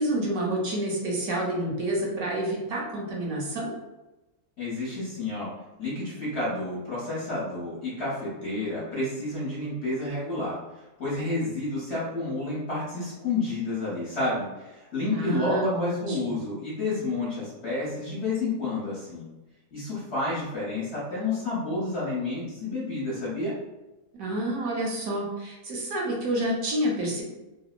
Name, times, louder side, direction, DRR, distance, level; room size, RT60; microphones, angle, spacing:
voice 1, 0.0-3.7 15.1-16.4 24.1-27.2, right 1 dB, 70° right, -3 dB, 1.0 m, -29 dB
voice 2, 4.6-5.5 5.8-10.6 11.0-19.3 19.7-23.6, left 2 dB, 50° left, -7 dB, 1.0 m, -30 dB
2.9 x 2.0 x 2.3 m, 1.0 s
omnidirectional pair, 1.6 m